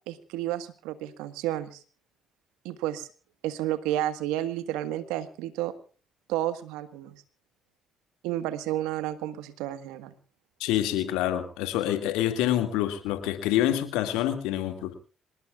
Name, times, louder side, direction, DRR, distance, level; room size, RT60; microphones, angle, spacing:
voice 1, 0.1-1.8 2.6-3.1 3.4-5.7 6.3-7.2 8.2-10.1, right 13 dB, 80° right, 12 dB, 1.6 m, -31 dB
voice 2, 10.6-14.9, left 12 dB, 80° left, 8 dB, 2.2 m, -27 dB
26.5 x 19.5 x 2.5 m, 0.37 s
hypercardioid pair, 50°, 0 cm